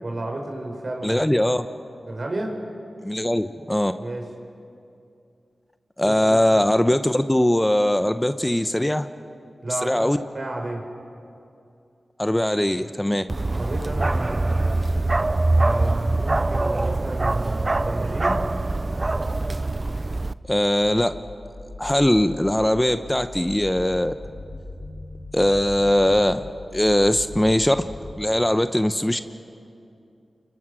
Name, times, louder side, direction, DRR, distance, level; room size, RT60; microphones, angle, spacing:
voice 1, 0.0-1.5 2.1-2.6 4.0-4.3 6.0-6.4 9.6-10.8 13.5-14.8 15.5-18.5, right 2 dB, 55° right, 2 dB, 4.5 m, -31 dB
voice 2, 1.0-1.7 3.0-3.9 6.0-9.1 9.8-10.2 12.2-13.2 20.5-21.1 21.8-24.1 25.3-26.4 26.7-27.8 28.2-29.2, left 1 dB, 15° left, 10 dB, 0.9 m, -20 dB
Bark, 13.3-20.3, right 2 dB, 40° right, 0.6 m, -23 dB
sound 1, 20.8-28.2, left 2 dB, 70° left, 6.9 m, -39 dB
29.0 x 22.5 x 6.4 m, 2.5 s
cardioid pair, 40°, 0 cm